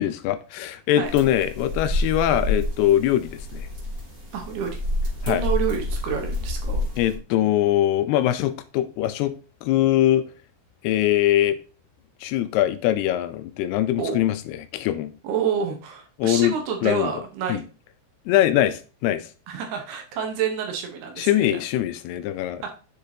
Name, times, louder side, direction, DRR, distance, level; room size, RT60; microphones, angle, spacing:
voice 1, 0.0-3.7 5.2-5.4 7.0-9.3 9.6-10.2 10.8-11.6 12.2-15.1 16.2-16.5 16.8-17.1 17.5-17.6 18.3-19.3 21.2-22.6, left 12 dB, 80° left, 2.4 m, -22 dB
sound 1, 1.0-7.1, left 2 dB, 20° right, 3.1 m, -28 dB
voice 2, 4.3-4.8 5.2-6.8 14.0-14.2 15.2-17.7 19.5-21.6 22.6-22.8, right 7 dB, 75° right, 3.0 m, -28 dB
7.5 x 6.8 x 2.8 m
omnidirectional pair, 4.9 m